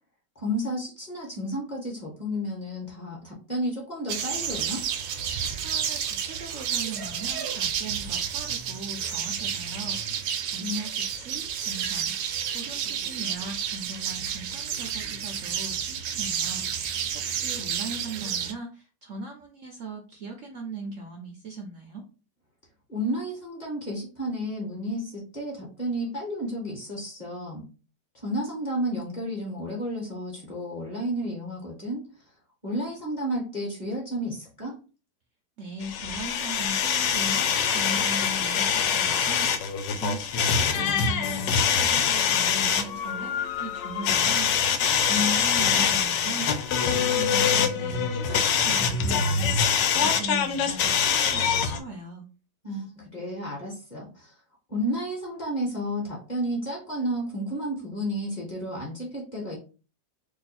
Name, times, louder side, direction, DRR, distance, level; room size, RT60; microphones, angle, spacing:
voice 1, 0.3-4.9 10.6-10.8 22.9-27.6 28.1-32.1 32.6-34.8 45.1-45.4 52.6-54.3 54.7-59.6, equal, 30° left, -2 dB, 1.0 m, -32 dB
sound 1, 4.1-18.5, right 8 dB, 85° right, 1.2 m, -31 dB
voice 2, 5.6-22.0 35.6-52.3, right 2 dB, 65° right, 2 dB, 0.8 m, -39 dB
sound 2, 35.8-51.8, left 7 dB, 85° left, 1.3 m, -24 dB
3.0 x 2.4 x 4.1 m, 0.34 s
omnidirectional pair, 1.9 m